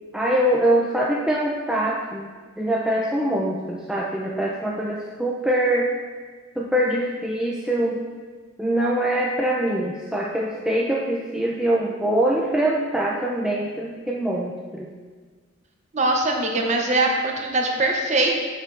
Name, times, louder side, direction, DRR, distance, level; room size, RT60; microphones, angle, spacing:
voice 1, 0.1-2.3 2.6-5.9 6.6-8.0 8.6-14.9, right 1 dB, 5° right, -4 dB, 0.3 m, -23 dB
voice 2, 15.9-18.3, right 2 dB, 35° right, 1 dB, 0.7 m, -22 dB
7.2 x 6.4 x 2.5 m, 1.5 s
head